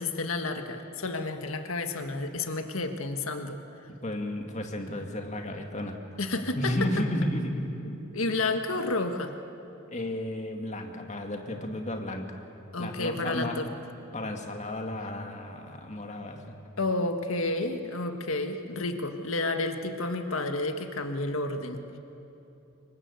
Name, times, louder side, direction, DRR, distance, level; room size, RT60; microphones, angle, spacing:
voice 1, 0.0-3.6 6.2-6.7 7.8-9.3 12.7-13.7 16.8-22.0, left 2 dB, 80° left, 6 dB, 1.6 m, -31 dB
voice 2, 4.0-6.0 6.6-7.7 9.9-12.4 12.8-13.6 14.1-16.5, left 1 dB, 35° left, 3 dB, 2.2 m, -33 dB
26.5 x 23.0 x 8.3 m, 2.8 s
head